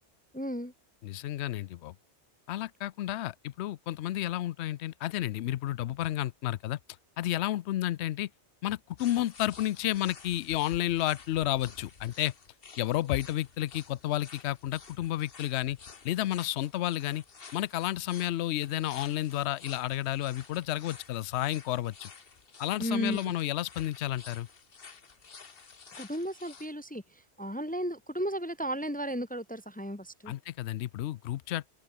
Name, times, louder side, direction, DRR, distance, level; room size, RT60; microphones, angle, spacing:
voice 1, 0.3-0.7 22.8-23.3 26.0-27.0 27.4-30.3, equal, 10° left, 0.5 m, -34 dB
voice 2, 1.0-1.9 2.5-6.8 7.2-8.3 8.6-12.3 12.8-15.8 16.0-17.2 17.5-22.1 22.6-24.5 30.3-31.7, left 14 dB, 75° left, 0.8 m, -31 dB
sound 1, 9.0-26.7, left 5 dB, 55° left, 1.6 m, -52 dB
open air
omnidirectional pair, 1.1 m